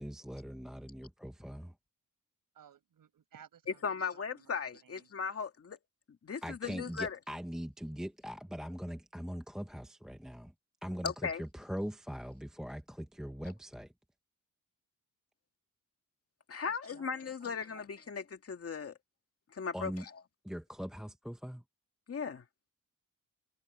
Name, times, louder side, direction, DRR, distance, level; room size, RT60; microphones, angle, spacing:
voice 1, 0.0-1.7 6.4-10.5 10.8-11.1 11.4-13.9 19.7-20.0 20.4-21.6, equal, ahead, 0.8 m, -41 dB
voice 2, 2.5-5.1 16.6-17.1 17.4-18.2, right 8 dB, 90° right, 6.4 m, -59 dB
voice 3, 3.7-5.8 6.2-7.2 11.0-11.4 16.5-19.0 19.5-20.1 22.1-22.5, left 6 dB, 45° left, 2.2 m, -37 dB
wide cardioid pair, 150°, 33 cm